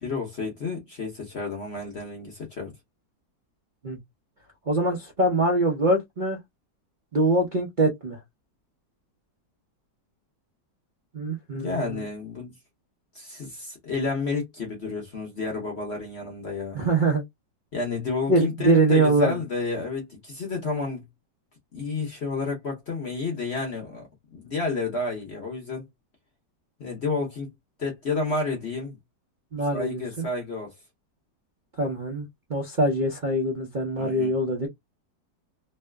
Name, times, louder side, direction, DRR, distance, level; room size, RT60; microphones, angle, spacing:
voice 1, 0.0-2.7 11.5-12.5 13.1-16.8 17.7-21.0 21.7-25.9 26.8-27.5 27.8-29.0 29.7-30.7 34.0-34.3, left 3 dB, 45° left, 1.0 m, -31 dB
voice 2, 4.7-6.4 7.1-8.2 11.1-12.0 16.7-17.2 18.3-19.4 29.5-30.3 31.8-32.2 32.5-34.7, right 2 dB, 40° right, 0.7 m, -23 dB
3.1 x 2.8 x 2.2 m
omnidirectional pair, 2.0 m